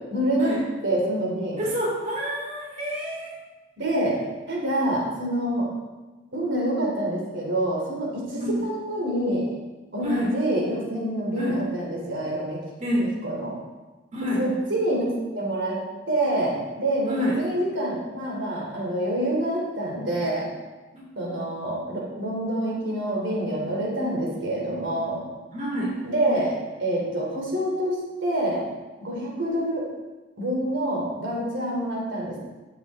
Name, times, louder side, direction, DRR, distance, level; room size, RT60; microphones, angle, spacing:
voice 1, 0.1-0.5 0.8-1.6 3.8-4.2 4.5-5.7 6.3-9.5 9.9-12.6 13.2-13.6 14.4-15.8 16.1-20.5 21.1-25.2 26.0-26.5 26.8-28.6 29.0-29.8 30.4-32.4, right 1 dB, 75° right, -3 dB, 2.9 m, -26 dB
voice 2, 1.6-3.3 8.4-8.6 10.0-10.3 11.4-11.6 12.8-13.1 14.1-14.5 17.1-17.4 20.9-21.0 25.5-26.0, equal, 35° right, -4 dB, 2.9 m, -28 dB
15.0 x 7.5 x 3.6 m, 1.2 s
head